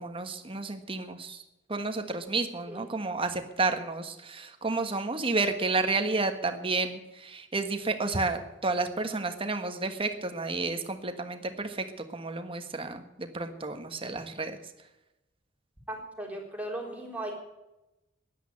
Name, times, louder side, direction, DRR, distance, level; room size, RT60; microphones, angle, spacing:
voice 1, 0.0-1.4 1.7-11.9 12.1-14.6, right 3 dB, 30° right, 7 dB, 1.4 m, -31 dB
voice 2, 15.9-17.3, right 1 dB, 10° right, -1 dB, 3.7 m, -37 dB
13.0 x 11.0 x 8.5 m, 0.96 s
head